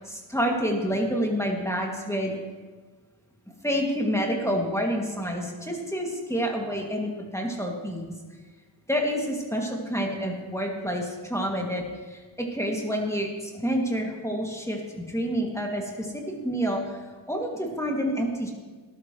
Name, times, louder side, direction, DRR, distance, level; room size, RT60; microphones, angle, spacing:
voice 1, 0.0-2.4 3.6-8.1 8.9-18.5, equal, 5° left, 0 dB, 2.4 m, -28 dB
14.0 x 11.5 x 3.2 m, 1.4 s
cardioid pair, 45°, 48 cm